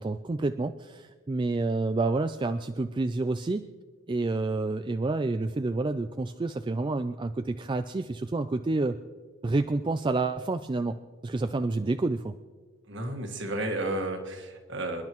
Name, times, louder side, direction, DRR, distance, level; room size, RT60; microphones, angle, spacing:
voice 1, 0.0-3.6 4.1-9.0 9.4-12.3, right 3 dB, 20° right, 8 dB, 0.3 m, -29 dB
voice 2, 12.9-15.0, right 1 dB, 55° right, 4 dB, 1.6 m, -32 dB
27.0 x 10.5 x 3.0 m, 1.4 s
head